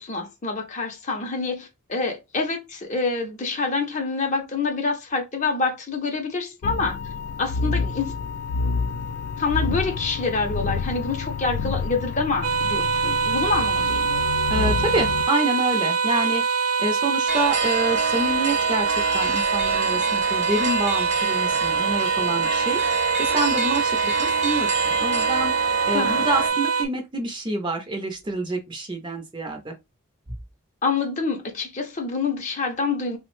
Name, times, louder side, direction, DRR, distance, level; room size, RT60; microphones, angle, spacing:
voice 1, 0.0-7.0 7.4-8.1 9.4-14.1 25.9-26.3 30.8-33.2, left 4 dB, 35° left, 0.5 m, -26 dB
sound 1, 6.6-15.3, left 4 dB, 85° left, 0.3 m, -28 dB
sound 2, 12.4-26.8, right 5 dB, 85° right, 0.4 m, -24 dB
voice 2, 14.5-16.4 16.8-22.8 23.2-25.5 25.8-29.7, right 2 dB, 20° right, 0.5 m, -27 dB
sound 3, 17.3-26.5, right 3 dB, 55° right, 0.9 m, -29 dB
3.3 x 2.0 x 3.0 m
head